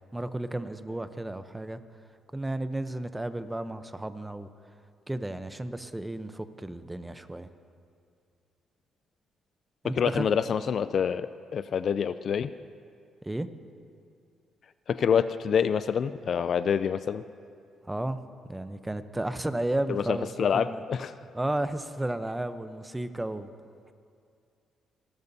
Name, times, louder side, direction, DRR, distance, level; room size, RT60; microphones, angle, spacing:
voice 1, 0.1-1.8 2.3-4.5 5.1-7.5 9.8-10.3 13.2-13.5 17.8-18.2 18.5-20.8 21.3-23.5, right 1 dB, 10° right, 11 dB, 0.7 m, -33 dB
voice 2, 10.0-12.5 14.9-17.2 19.9-21.1, left 7 dB, 55° left, 14 dB, 0.3 m, -27 dB
29.0 x 12.0 x 2.7 m, 2.4 s
cardioid pair, 90°, 0 cm